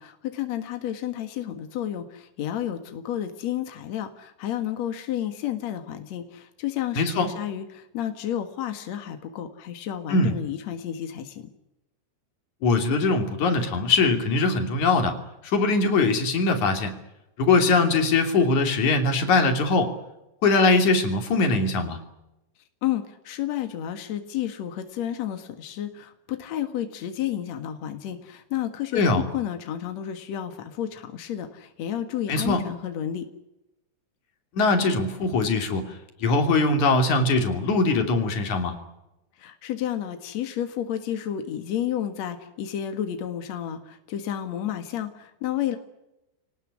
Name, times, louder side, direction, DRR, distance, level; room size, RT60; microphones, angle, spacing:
voice 1, 0.0-11.4 22.8-33.2 39.4-45.8, left 11 dB, 70° left, 7 dB, 1.6 m, -31 dB
voice 2, 7.0-7.3 10.1-10.3 12.6-15.2 15.4-16.9 17.4-19.9 20.4-22.0 28.9-29.2 32.3-32.6 34.6-35.8 36.2-38.7, left 3 dB, 40° left, 5 dB, 3.8 m, -21 dB
27.5 x 19.0 x 9.9 m, 0.95 s
omnidirectional pair, 5.8 m